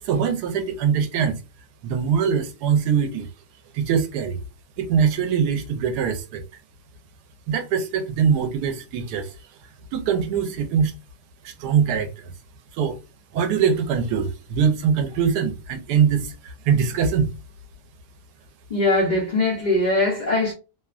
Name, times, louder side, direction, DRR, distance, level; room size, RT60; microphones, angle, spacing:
voice 1, 0.0-1.4 1.8-3.3 3.7-4.4 4.8-6.4 7.5-9.3 9.9-10.9 11.4-12.3 12.7-13.0 13.3-17.3, right 7 dB, 85° right, 1.2 m, -22 dB
voice 2, 18.7-20.5, left 2 dB, 85° left, 0.4 m, -21 dB
3.0 x 2.1 x 2.3 m
omnidirectional pair, 1.7 m